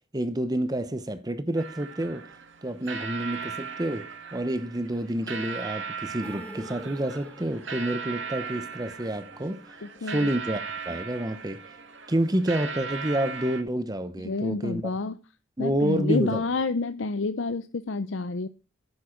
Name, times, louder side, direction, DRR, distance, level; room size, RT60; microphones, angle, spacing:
voice 1, 0.1-2.3 2.6-9.6 10.0-11.6 12.1-14.8 15.6-16.4, right 1 dB, 20° right, 0.9 m, -29 dB
sound 1, 1.5-13.6, right 6 dB, 75° right, 2.1 m, -38 dB
sound 2, 6.2-10.4 10.6-10.7 11.1-11.2, left 1 dB, 5° left, 0.8 m, -48 dB
voice 2, 9.8-10.3 14.2-15.2 15.6-18.5, left 3 dB, 75° left, 0.6 m, -29 dB
11.5 x 9.8 x 4.5 m
head